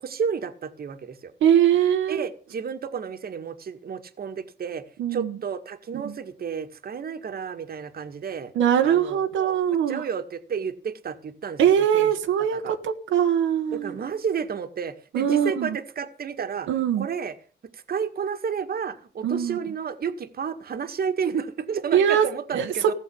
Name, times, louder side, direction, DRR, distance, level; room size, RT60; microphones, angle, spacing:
voice 1, 0.0-1.3 2.1-4.8 5.1-8.5 8.8-11.6 11.9-12.1 12.5-12.8 13.7-16.7 17.0-17.4 17.7-22.9, right 6 dB, 50° right, 8 dB, 1.8 m, -31 dB
voice 2, 1.4-2.2 5.0-5.3 5.9-6.1 8.5-10.0 11.6-14.0 15.1-15.8 16.7-17.1 19.2-19.6 21.9-22.3 22.5-22.7, right 9 dB, 80° right, 4 dB, 1.4 m, -22 dB
16.0 x 7.1 x 8.5 m, 0.41 s
cardioid pair, 90°, 20 cm